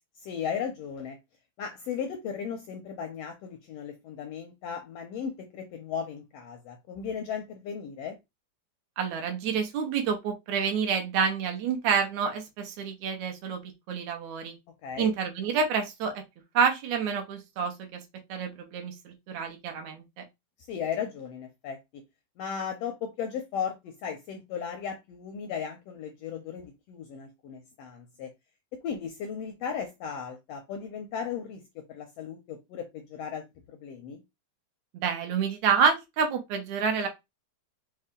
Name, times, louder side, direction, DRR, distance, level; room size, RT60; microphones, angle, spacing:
voice 1, 0.2-1.2 1.6-8.2 14.8-15.1 20.7-21.8 22.4-28.3 28.7-31.6 31.9-33.4 33.8-34.2, left 7 dB, 75° left, 1.5 m, -36 dB
voice 2, 9.0-13.6 13.9-14.6 15.0-16.2 16.5-18.0 18.3-20.0 35.0-37.1, right 6 dB, 70° right, 2.1 m, -28 dB
5.4 x 2.4 x 3.6 m
omnidirectional pair, 3.5 m